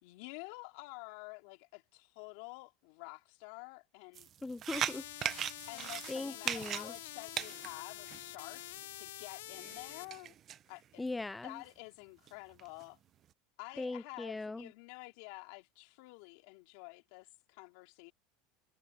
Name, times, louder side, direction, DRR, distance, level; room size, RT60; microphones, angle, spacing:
voice 1, 0.0-4.3 5.7-10.3 10.7-11.0 11.4-13.0 13.6-18.1, left 27 dB, 70° left, 4.0 m, -49 dB
sound 1, 4.1-8.7 9.5-10.6 11.1-11.2 11.6-11.7 12.3-12.8, right 10 dB, 35° right, 0.8 m, -39 dB
voice 2, 4.4-5.0 6.1-6.9 11.0-11.6 13.8-14.7, left 2 dB, 10° left, 0.3 m, -39 dB
sound 2, 4.7-10.0, left 16 dB, 85° left, 0.7 m, -47 dB
supercardioid pair, 135°, 0 cm